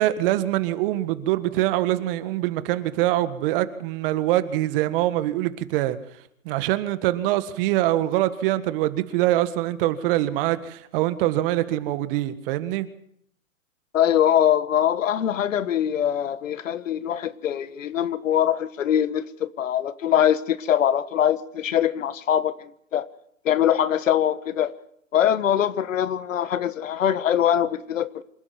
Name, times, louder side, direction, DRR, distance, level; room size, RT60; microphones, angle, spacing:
voice 1, 0.0-6.0 6.5-12.9, right 15 dB, 40° right, 13 dB, 1.7 m, -24 dB
voice 2, 13.9-23.1 23.4-24.7 25.1-28.2, left 10 dB, 70° left, 16 dB, 1.4 m, -23 dB
26.5 x 12.0 x 9.5 m, 0.70 s
hypercardioid pair, 125°, 41 cm